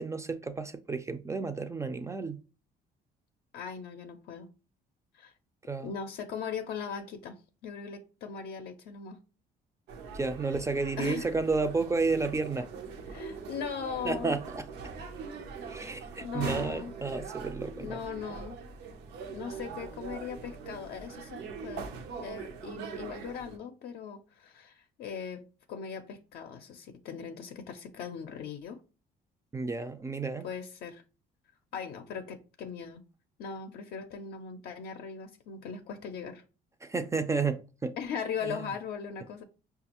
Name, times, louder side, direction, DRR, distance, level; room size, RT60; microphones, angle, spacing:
voice 1, 0.0-2.4 5.7-5.9 10.1-12.7 14.1-14.6 15.7-18.0 29.5-30.5 36.8-37.9 38.4-38.6, right 4 dB, 15° right, 0.3 m, -31 dB
voice 2, 3.5-4.5 5.1-5.3 5.8-9.2 11.0-11.3 13.1-14.4 16.2-16.9 17.7-18.6 19.3-21.9 22.2-28.8 30.4-31.0 31.7-33.0 33.4-36.4 38.0-39.4, left 6 dB, 65° left, 0.5 m, -39 dB
sound 1, 9.9-23.6, right 5 dB, 85° right, 0.6 m, -42 dB
5.1 x 2.3 x 2.9 m
cardioid pair, 110°, 17 cm